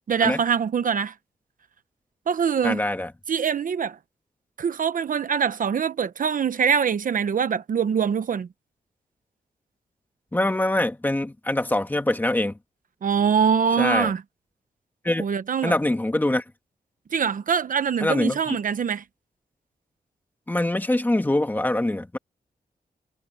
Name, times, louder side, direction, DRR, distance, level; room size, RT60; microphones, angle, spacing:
voice 1, 0.1-1.1 2.3-2.8 3.3-4.0 4.6-8.5 13.0-14.2 15.2-15.7 17.1-19.0, right 7 dB, 60° right, 0.8 m, -23 dB
voice 2, 2.6-3.1 10.3-12.5 13.8-14.1 15.0-15.3 15.6-16.4 18.0-18.6 20.5-22.2, left 1 dB, 10° left, 1.8 m, -24 dB
wide cardioid pair, 170°, 16 cm